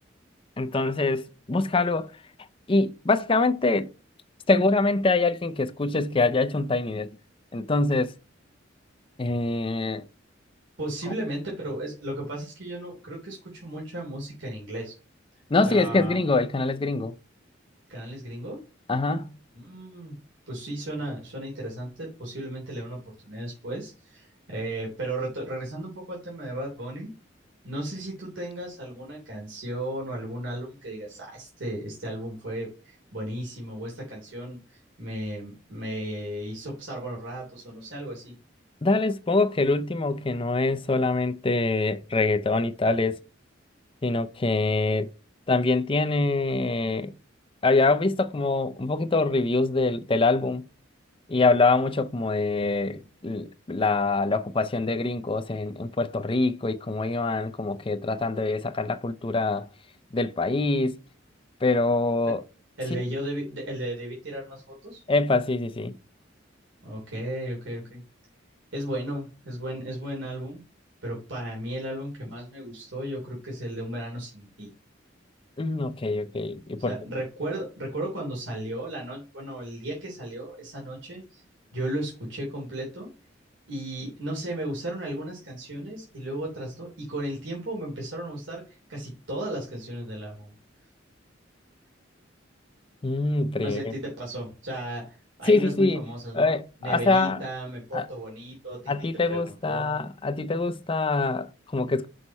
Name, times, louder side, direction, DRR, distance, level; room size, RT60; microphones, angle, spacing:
voice 1, 0.6-2.1 2.7-3.9 4.5-7.1 7.5-8.1 9.2-10.0 15.5-17.1 18.9-19.3 38.8-43.2 44.0-45.1 45.5-47.1 47.6-50.6 51.3-59.7 60.1-61.0 61.6-62.4 62.9-63.0 65.1-66.0 75.6-76.9 93.0-93.9 95.4-96.1 96.3-97.4 97.9-98.1 98.9-102.1, left 3 dB, 30° left, 0.5 m, -24 dB
voice 2, 10.8-14.9 15.6-16.2 17.9-18.6 19.5-20.2 20.5-27.1 27.6-38.3 62.8-65.0 66.8-68.0 68.7-70.6 71.0-74.7 76.8-81.4 81.7-83.1 83.7-90.5 93.6-96.5 96.8-98.9 99.2-100.0, right 1 dB, 80° right, 3.0 m, -35 dB
6.3 x 5.4 x 4.2 m
head